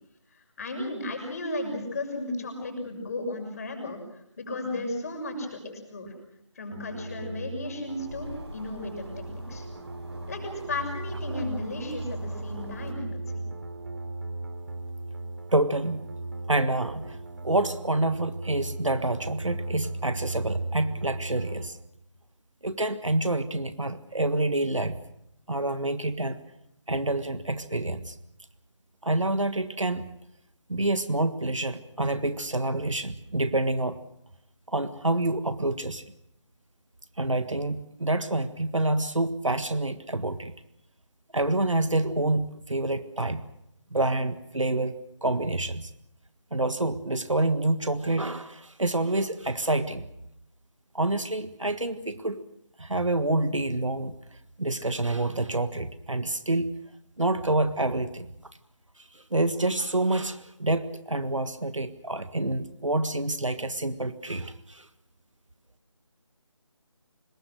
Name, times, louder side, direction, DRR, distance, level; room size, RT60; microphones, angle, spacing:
voice 1, 0.3-5.6 5.9-6.1 6.5-9.7 10.3-13.1 13.3-13.4, left 2 dB, 30° left, 4 dB, 6.5 m, -34 dB
sound 1, 6.7-21.7, right 2 dB, 45° right, 3.0 m, -37 dB
sound 2, 7.8-12.9, equal, 60° right, 7.8 m, -46 dB
voice 2, 15.5-16.0 16.5-17.2 17.4-21.8 22.6-25.0 25.5-26.4 26.9-28.1 29.0-30.1 30.7-34.0 34.7-36.1 37.2-40.5 41.3-43.4 43.9-44.9 45.2-45.9 46.5-50.1 50.9-52.4 52.8-54.1 54.6-56.7 57.2-58.3 59.0-64.9, right 2 dB, 80° right, 11 dB, 1.6 m, -27 dB
25.5 x 22.0 x 6.5 m, 0.77 s
figure-of-eight pair, 160°, 16 cm